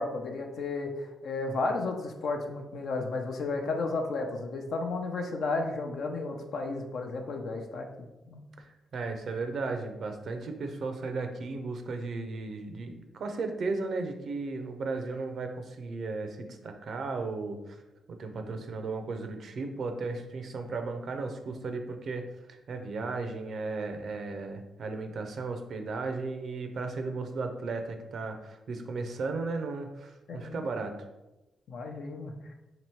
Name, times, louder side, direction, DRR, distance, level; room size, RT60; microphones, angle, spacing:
voice 1, 0.0-7.9 8.3-8.4 30.3-30.7 31.7-32.3, left 3 dB, 65° left, 3 dB, 0.6 m, -33 dB
voice 2, 8.6-17.8 18.1-31.0, right 3 dB, 65° right, 5 dB, 0.5 m, -35 dB
3.0 x 3.0 x 4.4 m, 1.0 s
hypercardioid pair, 45°, 0 cm